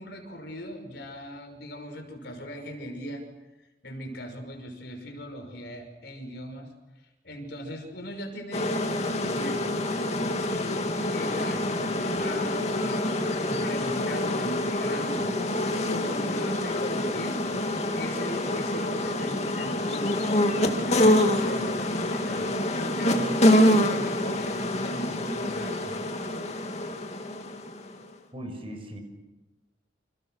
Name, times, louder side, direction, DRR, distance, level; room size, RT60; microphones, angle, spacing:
voice 1, 0.0-3.2 3.8-6.7 7.2-9.7 10.4-11.7 12.2-15.3 15.8-17.5 17.9-22.6 22.9-26.1, equal, 60° left, 5 dB, 5.8 m, -39 dB
sound 1, 8.5-28.0, left 1 dB, 35° left, 2.5 m, -26 dB
voice 2, 28.3-29.0, equal, 30° right, 5 dB, 6.0 m, -38 dB
29.5 x 27.5 x 6.5 m, 1.0 s
head